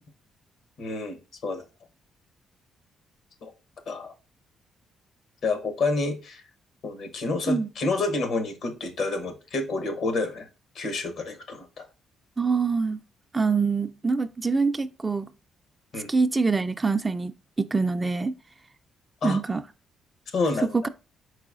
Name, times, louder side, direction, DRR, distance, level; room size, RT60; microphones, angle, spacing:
voice 1, 0.8-1.6 3.4-3.5 3.9-4.1 5.4-6.4 6.8-10.5 10.7-11.9 15.9-16.1 19.2-19.4 20.3-20.7, left 3 dB, 65° left, 0.9 m, -29 dB
voice 2, 12.4-13.0 13.3-15.3 16.1-18.3 19.2-19.6, right 4 dB, 20° right, 0.3 m, -25 dB
4.8 x 4.0 x 2.4 m
cardioid pair, 90°, 0 cm